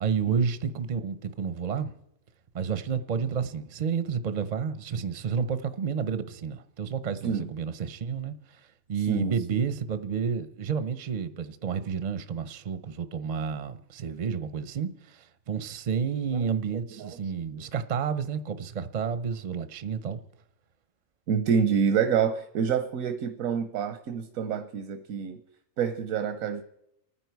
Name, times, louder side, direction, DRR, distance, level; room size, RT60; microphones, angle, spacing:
voice 1, 0.0-1.9 2.5-8.4 8.9-20.2, right 6 dB, 40° right, 0.6 m, -30 dB
voice 2, 21.3-25.4 25.8-26.6, right 7 dB, 90° right, 1.2 m, -27 dB
29.0 x 9.8 x 4.6 m
omnidirectional pair, 1.4 m